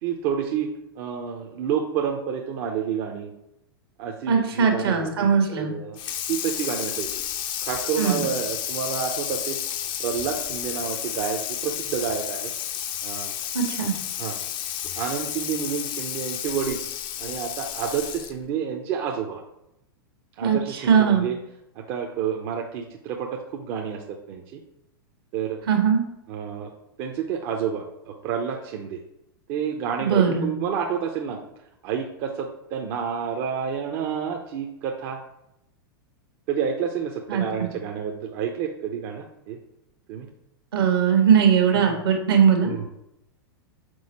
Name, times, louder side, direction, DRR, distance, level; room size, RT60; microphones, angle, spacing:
voice 1, 0.0-3.3 4.0-6.0 6.3-7.2 7.6-9.6 10.0-12.5 13.0-13.3 14.2-14.4 14.9-16.8 17.2-19.4 20.4-21.4 21.7-24.6 25.3-25.6 26.3-26.7 27.0-29.0 29.5-31.4 31.8-35.2 36.5-39.6 40.1-40.3 41.7-42.0 42.6-42.9, right 7 dB, 50° right, 2 dB, 0.8 m, -29 dB
voice 2, 4.3-5.7 8.0-8.2 13.5-13.9 20.4-20.6 20.9-21.3 25.7-26.0 30.0-30.5 37.3-37.7 40.7-42.7, right 7 dB, 75° right, 3 dB, 1.6 m, -20 dB
Water tap faucet / Sink (filling or washing), 6.0-18.5, left 10 dB, 35° left, 0.6 m, -31 dB
6.3 x 4.3 x 4.2 m, 0.84 s
hypercardioid pair, 105°, 13 cm